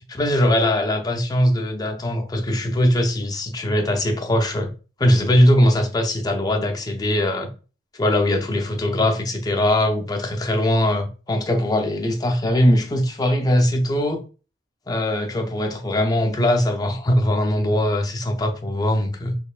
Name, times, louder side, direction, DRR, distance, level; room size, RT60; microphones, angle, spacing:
voice 1, 0.2-4.7 5.0-7.5 8.0-14.2 14.9-19.4, left 1 dB, 20° left, 0.5 m, -21 dB
4.1 x 3.0 x 2.4 m
head